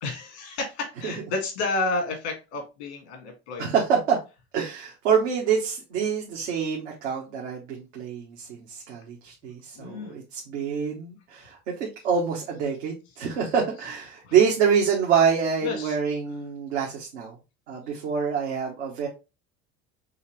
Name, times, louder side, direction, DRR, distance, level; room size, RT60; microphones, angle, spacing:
voice 1, 0.0-3.7 9.8-10.2 14.2-14.3 15.6-16.0, left 3 dB, 85° left, 3 dB, 2.0 m, -31 dB
voice 2, 3.6-4.2 4.5-17.3 17.7-19.1, right 6 dB, 85° right, -2 dB, 1.2 m, -26 dB
5.5 x 2.9 x 3.1 m, 0.28 s
hypercardioid pair, 80°, 32 cm